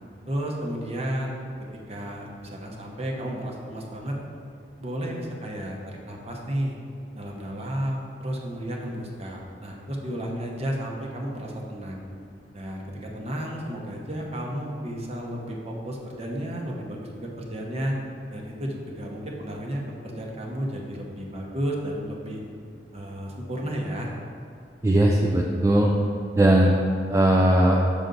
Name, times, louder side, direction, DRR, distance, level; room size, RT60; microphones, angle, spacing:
voice 1, 0.3-1.4 1.9-4.2 4.8-6.7 7.1-12.0 12.5-18.0 18.3-22.4 22.9-24.1, equal, 35° right, -1 dB, 1.0 m, -32 dB
voice 2, 24.8-25.9 26.4-26.7 27.1-27.8, right 1 dB, 15° right, -2 dB, 0.4 m, -18 dB
6.8 x 6.0 x 3.9 m, 2.4 s
head